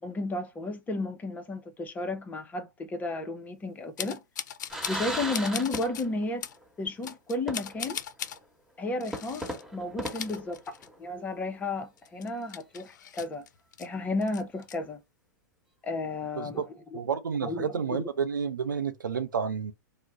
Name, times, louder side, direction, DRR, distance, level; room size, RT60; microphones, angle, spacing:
voice 1, 0.0-4.2 4.9-6.5 6.8-8.0 8.8-10.6 11.0-13.5 13.8-15.0 15.8-16.6 16.9-17.0 17.4-18.1, left 2 dB, 15° left, 0.5 m, -33 dB
sound 1, 4.0-5.1 5.3-6.1 6.4-6.6 7.0-8.4 9.0-9.6 9.9-11.1 11.4-11.5 12.0-13.9 14.2-14.7, left 9 dB, 65° left, 0.4 m, -39 dB
sound 2, 4.7-6.3 6.6-6.7 7.5-8.0 8.4-8.5 9.1-11.1, right 1 dB, 5° right, 1.2 m, -37 dB
voice 2, 16.9-19.7, right 6 dB, 85° right, 0.6 m, -30 dB
2.4 x 2.0 x 3.8 m
hypercardioid pair, 110°, 10 cm